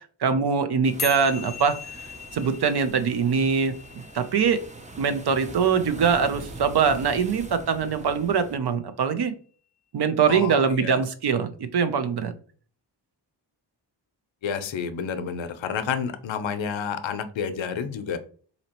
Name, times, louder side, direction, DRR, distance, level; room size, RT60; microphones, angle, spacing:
voice 1, 0.2-1.7 2.3-3.7 4.1-4.6 5.0-9.3 9.9-12.3, right 6 dB, 60° right, 10 dB, 0.6 m, -23 dB
sound 1, 0.8-8.6, right 2 dB, 15° right, 0.4 m, -43 dB
sound 2, 1.0-7.6, left 7 dB, 40° left, 0.5 m, -41 dB
voice 2, 10.3-11.0 14.4-18.2, left 7 dB, 85° left, 10 dB, 0.6 m, -30 dB
4.0 x 2.8 x 2.9 m, 0.43 s
wide cardioid pair, 95°, 45 cm